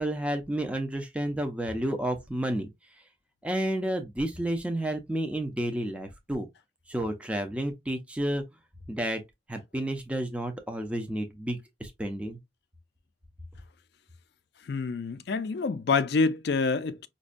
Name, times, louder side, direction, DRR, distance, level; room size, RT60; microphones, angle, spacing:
voice 1, 0.0-2.7 3.4-6.5 6.9-8.4 8.9-9.2 9.5-12.4, right 1 dB, 5° right, 0.4 m, -31 dB
voice 2, 14.7-17.1, left 4 dB, 60° left, 0.4 m, -27 dB
5.1 x 2.1 x 2.4 m
head